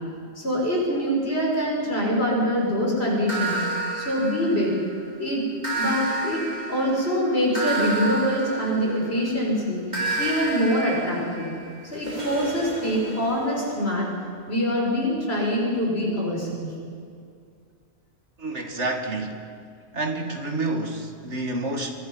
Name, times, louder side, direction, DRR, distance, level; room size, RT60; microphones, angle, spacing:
voice 1, 0.4-3.6 3.9-4.8 5.2-5.5 5.7-6.4 6.7-9.9 10.2-11.5 11.9-14.1 14.5-16.7, equal, 65° left, -2 dB, 6.6 m, -24 dB
sound 1, 3.3-5.0 5.6-9.3 9.9-13.7, right 2 dB, 40° right, 4.3 m, -30 dB
voice 2, 18.4-19.4 19.9-21.9, right 2 dB, 80° right, 4 dB, 2.5 m, -28 dB
24.5 x 24.0 x 5.7 m, 2.3 s
omnidirectional pair, 1.2 m